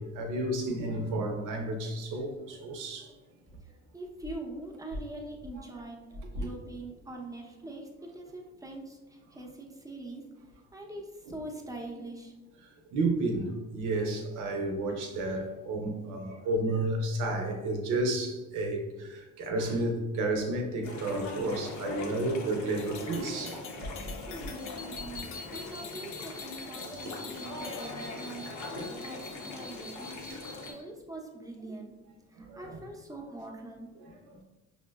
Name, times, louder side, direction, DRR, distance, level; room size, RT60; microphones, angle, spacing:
voice 1, 0.0-3.1 6.3-6.5 12.9-23.6 23.9-24.0 27.1-27.2 27.8-27.9 28.8-29.0 30.3-30.4 32.4-32.8 34.3-34.4, right 2 dB, 85° right, 0.7 m, -32 dB
voice 2, 3.6-6.0 6.4-10.2 10.7-12.3 24.2-28.5 29.0-30.3 30.7-31.9 32.3-33.9, right 1 dB, 10° right, 0.6 m, -43 dB
sound 1, 20.8-30.7, left 3 dB, 70° left, 0.8 m, -41 dB
sound 2, 22.8-27.9, left 6 dB, 45° left, 0.4 m, -47 dB
sound 3, 24.6-30.8, left 2 dB, 30° left, 0.8 m, -47 dB
5.6 x 2.1 x 2.3 m
cardioid pair, 90°, 30 cm